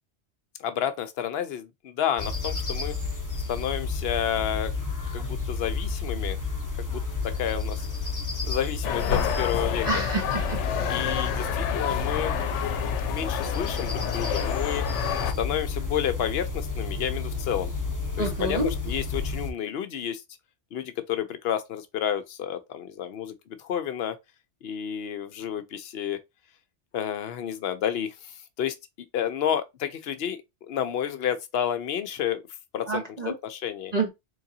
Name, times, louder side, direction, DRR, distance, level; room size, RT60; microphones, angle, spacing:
voice 1, 0.6-3.0 3.5-4.7 5.1-6.4 6.8-7.9 8.4-10.0 10.9-12.3 13.1-14.8 15.4-17.7 18.2-20.2 20.7-24.2 24.6-26.2 26.9-28.7 29.1-30.4 30.7-32.5 32.7-33.0 33.4-33.9, left 9 dB, 65° left, 0.8 m, -30 dB
sound 1, 2.2-19.5, left 4 dB, 20° left, 0.7 m, -31 dB
sound 2, 8.8-15.3, left 9 dB, 90° left, 0.9 m, -29 dB
voice 2, 9.8-10.6 18.2-18.7 32.9-33.3 33.9-34.1, right 3 dB, 40° right, 0.8 m, -28 dB
3.8 x 3.2 x 2.7 m
omnidirectional pair, 1.2 m